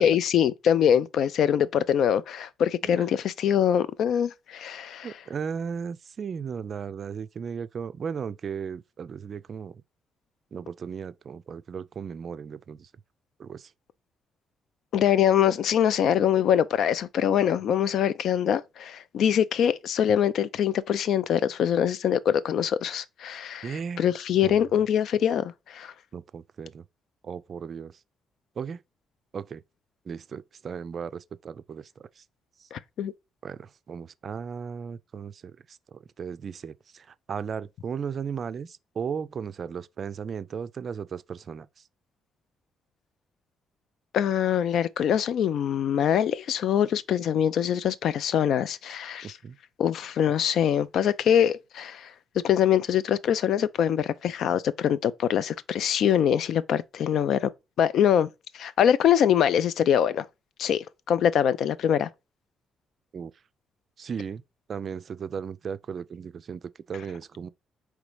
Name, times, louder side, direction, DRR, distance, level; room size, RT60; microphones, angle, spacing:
voice 1, 0.0-5.1 14.9-25.9 32.7-33.1 44.1-49.3 49.8-52.1 52.4-57.5 57.8-58.3 58.5-60.3 60.6-62.1, left 9 dB, 65° left, 0.4 m, -24 dB
voice 2, 5.0-9.8 10.5-12.9 13.4-13.7 23.6-24.1 24.4-24.6 26.1-26.8 27.2-27.9 28.6-28.8 29.3-29.6 30.1-32.2 32.6-32.7 33.4-41.7 49.2-49.6 63.1-63.3 64.0-64.4 64.7-67.5, right 6 dB, 50° right, 0.3 m, -36 dB
4.8 x 3.2 x 3.2 m
hypercardioid pair, 45°, 0 cm